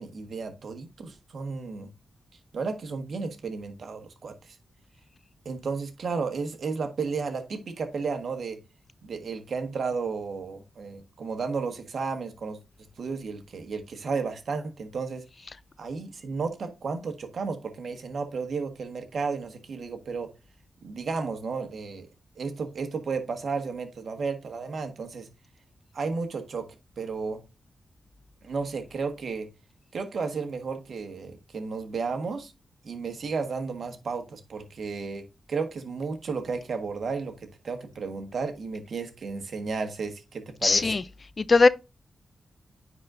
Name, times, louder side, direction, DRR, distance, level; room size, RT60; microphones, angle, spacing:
voice 1, 0.0-1.9 2.5-4.6 5.4-8.6 9.0-12.6 13.0-15.2 15.8-20.3 20.8-22.1 22.4-25.3 25.9-26.7 27.0-27.4 28.4-29.5 29.9-32.5 32.8-37.3 37.6-41.0, right 4 dB, 70° right, 1.4 m, -33 dB
voice 2, 40.6-41.0 41.4-41.7, left 3 dB, 45° left, 0.4 m, -19 dB
9.6 x 4.1 x 2.6 m
cardioid pair, 60°, 0 cm